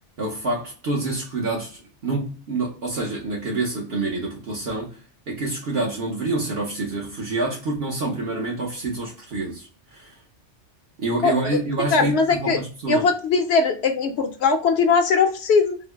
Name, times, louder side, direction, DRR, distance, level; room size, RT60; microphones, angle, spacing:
voice 1, 0.2-5.0 5.3-10.2 11.0-13.1, right 2 dB, 60° right, 1.0 m, -27 dB
voice 2, 11.2-11.6 11.9-12.6 12.9-15.8, left 5 dB, 70° left, 0.8 m, -20 dB
3.8 x 2.0 x 3.3 m
omnidirectional pair, 1.2 m